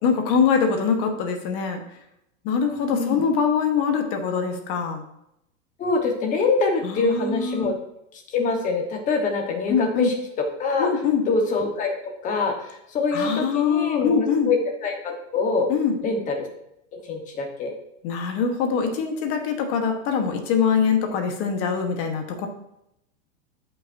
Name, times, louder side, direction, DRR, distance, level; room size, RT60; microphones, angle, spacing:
voice 1, 0.0-1.8 2.4-5.0 6.8-7.7 9.7-10.1 10.8-11.2 13.1-14.5 15.7-15.9 18.0-22.5, left 6 dB, 35° left, 5 dB, 1.2 m, -23 dB
voice 2, 2.9-3.2 5.8-7.7 8.3-10.1 10.6-10.9 11.3-11.9 12.2-14.6 14.8-15.7 16.0-16.5 17.1-17.7, left 4 dB, 20° left, 2 dB, 1.2 m, -24 dB
13.0 x 5.6 x 2.7 m, 0.80 s
supercardioid pair, 165°, 39 cm